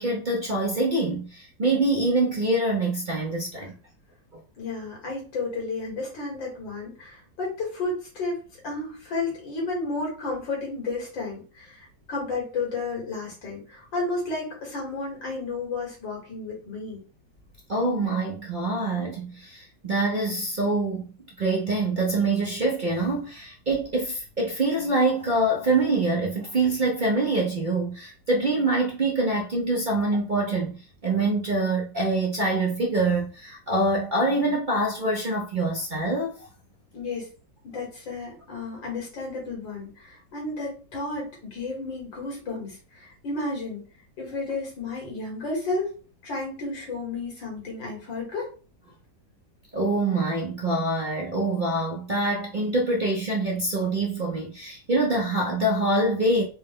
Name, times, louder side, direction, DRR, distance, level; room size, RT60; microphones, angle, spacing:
voice 1, 0.0-3.7 4.3-4.4 17.7-21.1 21.4-36.5 49.7-56.4, right 2 dB, 60° right, 0.5 m, -25 dB
voice 2, 4.6-17.0 36.9-37.3 37.6-43.8 44.2-45.9 46.2-48.5, left 3 dB, 85° left, 2.5 m, -32 dB
4.5 x 2.2 x 3.6 m
omnidirectional pair, 2.0 m